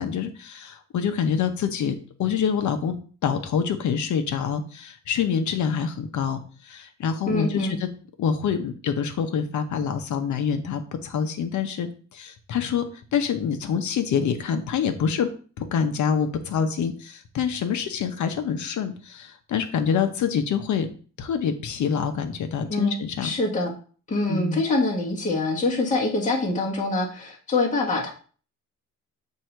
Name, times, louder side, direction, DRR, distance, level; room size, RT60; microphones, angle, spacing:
voice 1, 0.0-2.9 3.2-7.9 8.2-12.8 13.1-15.3 15.6-20.9 21.2-23.3 24.3-24.6, left 7 dB, 65° left, 7 dB, 0.9 m, -26 dB
voice 2, 7.3-7.7 22.7-22.9 23.2-23.7 24.1-28.1, left 2 dB, 25° left, -3 dB, 1.5 m, -25 dB
8.0 x 2.8 x 4.5 m, 0.40 s
cardioid pair, 135°, 32 cm